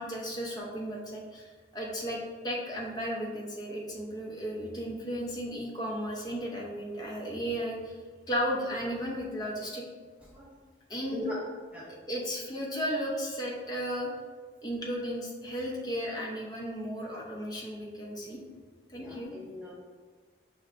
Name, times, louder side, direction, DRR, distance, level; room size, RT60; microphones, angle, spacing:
voice 1, 0.0-8.0 8.3-9.8 10.9-11.3 12.1-14.1 14.6-18.4 18.9-19.3, equal, 20° left, -3 dB, 0.7 m, -34 dB
voice 2, 11.7-12.0 18.9-19.7, equal, 10° right, -5 dB, 0.5 m, -40 dB
5.7 x 3.2 x 2.5 m, 1.5 s
head